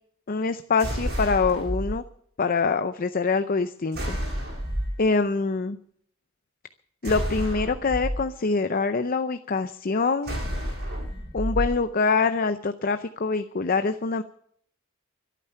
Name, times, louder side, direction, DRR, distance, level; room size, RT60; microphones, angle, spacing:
voice 1, 0.3-2.0 2.4-4.2 5.0-5.8 7.0-10.4 11.3-14.2, left 4 dB, 45° left, 10 dB, 0.6 m, -25 dB
sound 1, 0.8-1.9 3.9-5.0 7.0-8.1 10.2-11.7, equal, 50° right, 6.9 m, -29 dB
24.0 x 9.2 x 5.7 m, 0.65 s
head